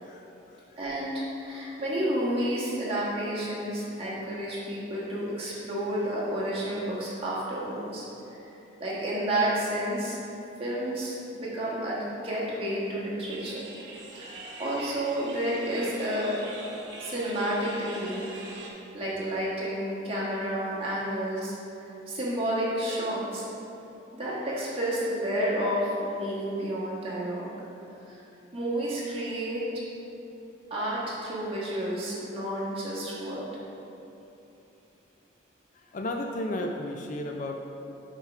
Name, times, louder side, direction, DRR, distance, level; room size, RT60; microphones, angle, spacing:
voice 1, 0.0-0.8 35.7-37.6, left 1 dB, 40° left, 3 dB, 0.3 m, -34 dB
voice 2, 0.8-8.4 8.8-10.2 10.6-12.0 12.2-13.6 14.1-14.3 14.6-16.4 17.0-18.3 18.9-23.4 24.1-27.5 28.0-28.2 28.5-29.7 30.7-33.4, right 1 dB, 30° right, -7 dB, 1.5 m, -30 dB
sound 1, 13.2-18.7, right 2 dB, 65° right, 1.0 m, -43 dB
6.4 x 4.5 x 4.7 m, 3.0 s
head